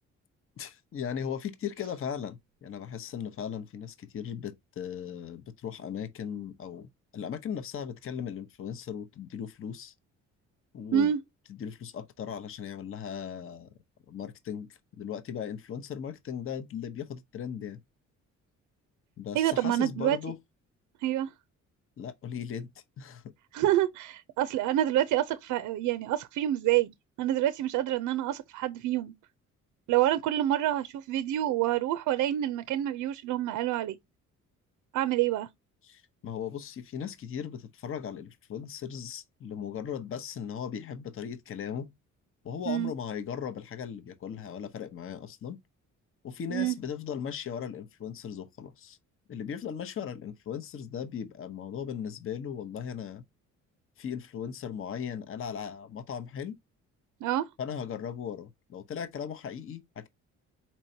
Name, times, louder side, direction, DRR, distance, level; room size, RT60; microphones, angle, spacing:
voice 1, 0.6-9.9 10.7-11.1 11.6-13.7 14.1-17.8 19.2-20.4 22.0-23.2 35.8-41.9 42.4-45.6 46.2-49.0 49.3-53.2 54.0-56.6 57.6-60.1, left 8 dB, 45° left, 0.7 m, -37 dB
voice 2, 19.3-20.2 21.0-21.3 23.5-29.1 29.9-34.0 34.9-35.5 42.7-42.9 46.5-46.8 57.2-57.5, right 12 dB, 80° right, 0.5 m, -27 dB
4.5 x 4.3 x 2.7 m
cardioid pair, 90°, 30 cm